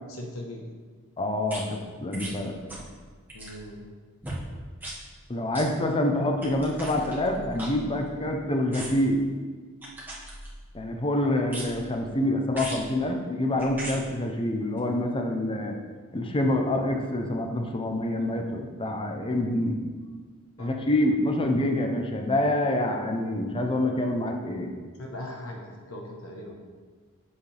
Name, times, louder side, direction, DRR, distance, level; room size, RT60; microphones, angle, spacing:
voice 1, 0.1-0.6 3.3-3.8 20.6-20.7 25.0-26.5, left 1 dB, 70° left, 0 dB, 1.2 m, -39 dB
voice 2, 1.2-2.5 5.3-9.2 10.7-15.8 16.1-19.8 20.6-24.7, left 1 dB, 25° left, 3 dB, 0.8 m, -26 dB
sound 1, 1.5-1.6 2.1-2.4 2.7-2.9 3.2-3.6 4.2-4.4 4.8-5.0 5.5-5.7 6.4-8.3 8.7-9.1 9.8-10.8 11.5-11.9 12.5-12.9 13.6-14.0 14.8-14.9, right 1 dB, 10° right, 1.7 m, -39 dB
8.3 x 7.4 x 3.4 m, 1.5 s
head